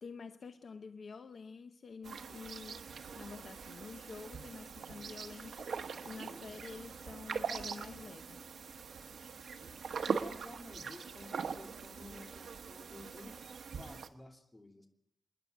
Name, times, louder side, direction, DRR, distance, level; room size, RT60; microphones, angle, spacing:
voice 1, 0.0-2.8 3.1-8.4, left 5 dB, 60° left, 8 dB, 0.8 m, -49 dB
sound 1, 2.0-14.1, right 6 dB, 85° right, 1.1 m, -42 dB
voice 2, 6.2-6.6 9.6-13.4 13.8-14.9, left 2 dB, 15° left, 2 dB, 2.8 m, -54 dB
27.5 x 10.5 x 9.3 m, 0.78 s
wide cardioid pair, 165°, 0 cm